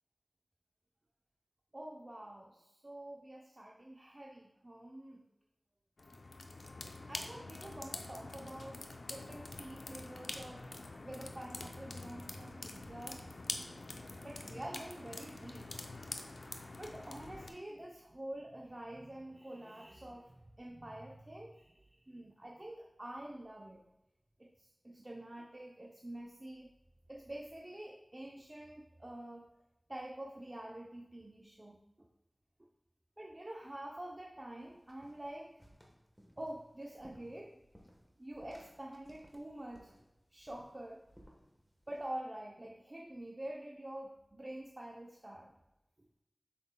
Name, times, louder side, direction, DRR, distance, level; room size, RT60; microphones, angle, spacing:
voice 1, 1.7-5.2 7.1-10.6 11.0-13.5 13.9-16.0 16.8-23.8 24.4-26.7 27.1-29.5 29.9-32.1 33.2-35.5 36.4-37.5 38.2-39.9 40.3-41.0 41.9-45.5, right 1 dB, 35° right, -1 dB, 0.6 m, -47 dB
sound 1, 6.0-17.5, left 2 dB, 85° left, 0.5 m, -46 dB
sound 2, 34.6-42.1, equal, ahead, 1.1 m, -62 dB
7.2 x 5.9 x 2.2 m, 0.94 s
wide cardioid pair, 65°, 0 cm